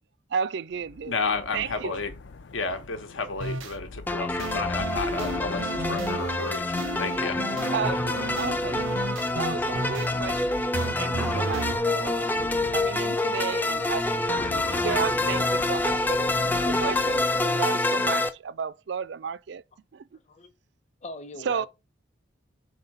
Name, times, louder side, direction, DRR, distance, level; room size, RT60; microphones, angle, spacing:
voice 1, 0.3-2.0 7.7-9.0 9.3-10.7 11.0-16.3 16.7-19.6 19.9-20.1 21.4-21.7, right 6 dB, 60° right, 0.3 m, -33 dB
sound 1, 0.7-17.6, left 3 dB, 65° left, 0.5 m, -43 dB
voice 2, 1.1-2.1 2.5-7.4, left 4 dB, 85° left, 1.2 m, -32 dB
sound 2, 3.4-3.7 4.4-7.8 8.2-10.1 10.7-11.8, right 3 dB, 85° right, 0.8 m, -34 dB
sound 3, 4.1-18.3, left 2 dB, 10° left, 0.4 m, -26 dB
voice 3, 21.0-21.7, left 1 dB, 35° left, 0.8 m, -39 dB
4.6 x 4.0 x 5.4 m
head